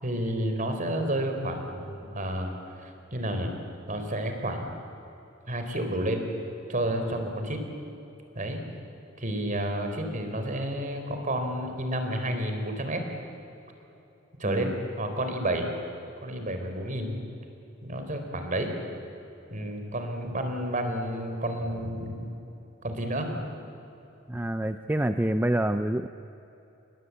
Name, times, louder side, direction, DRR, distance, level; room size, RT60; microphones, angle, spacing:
voice 1, 0.0-2.5 2.8-3.6 3.9-4.8 5.5-6.3 6.7-7.6 8.4-8.6 9.2-13.0 14.4-15.7 16.2-17.2 17.8-18.7 19.5-22.3 22.8-23.5, right 1 dB, 40° right, 5 dB, 3.8 m, -30 dB
voice 2, 24.3-26.1, right 1 dB, 10° right, 9 dB, 0.5 m, -27 dB
28.5 x 22.5 x 8.4 m, 3.0 s
head